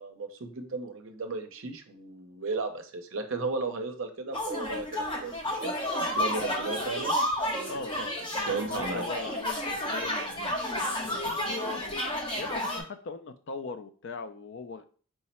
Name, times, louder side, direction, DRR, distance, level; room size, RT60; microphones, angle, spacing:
voice 1, 0.0-7.1 8.5-9.1, right 3 dB, 60° right, 6 dB, 0.6 m, -35 dB
sound 1, 4.3-12.8, left 1 dB, 20° left, 0.8 m, -31 dB
voice 2, 7.7-11.8 12.4-14.9, left 4 dB, 55° left, 10 dB, 0.4 m, -41 dB
4.6 x 2.1 x 4.1 m, 0.42 s
head